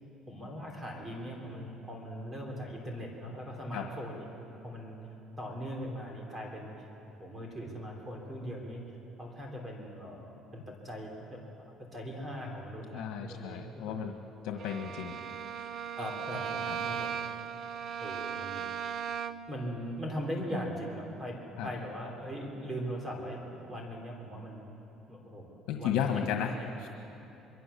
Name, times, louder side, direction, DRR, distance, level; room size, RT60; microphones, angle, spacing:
voice 1, 0.3-4.3 4.6-6.7 7.2-8.8 9.2-11.4 11.9-14.0 16.0-17.1 18.0-18.7 19.5-24.6 25.1-26.1 26.6-26.7, equal, 20° right, 1 dB, 3.4 m, -40 dB
voice 2, 12.9-14.1 14.4-15.2 15.6-15.7 16.7-16.8 21.6-21.7 25.7-26.6 26.8-26.9, left 8 dB, 85° left, 4 dB, 1.6 m, -33 dB
Bowed string instrument, 14.6-19.6, right 7 dB, 40° right, 0.6 m, -37 dB
24.5 x 23.0 x 7.0 m, 3.0 s
cardioid pair, 175°, 0 cm